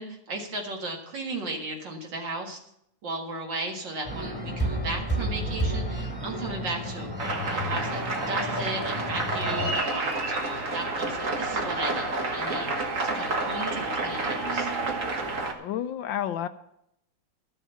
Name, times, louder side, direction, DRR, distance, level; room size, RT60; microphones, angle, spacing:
voice 1, 0.0-2.6 3.0-7.1 7.4-10.1 10.7-14.7, right 2 dB, 60° right, 1 dB, 2.5 m, -35 dB
sound 1, 4.0-9.7, right 1 dB, 5° right, 1.8 m, -32 dB
sound 2, 7.2-15.5, right 2 dB, 45° right, 1.7 m, -29 dB
voice 2, 15.6-16.5, left 10 dB, 75° left, 11 dB, 1.3 m, -30 dB
12.5 x 7.2 x 7.0 m, 0.76 s
omnidirectional pair, 2.2 m